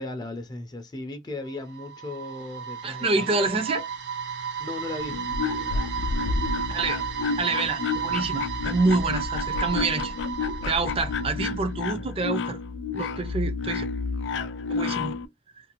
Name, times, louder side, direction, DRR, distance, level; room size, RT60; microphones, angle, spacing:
voice 1, 0.0-3.5 4.6-5.2, left 2 dB, 25° left, 0.4 m, -36 dB
sound 1, 1.5-11.5, right 7 dB, 80° right, 0.5 m, -33 dB
voice 2, 2.8-3.8 6.7-7.0 7.4-10.1 10.6-12.6 12.9-13.9 14.7-15.2, right 3 dB, 30° right, 0.5 m, -27 dB
sound 2, 5.0-15.3, left 4 dB, 85° left, 0.4 m, -30 dB
2.6 x 2.3 x 2.8 m
head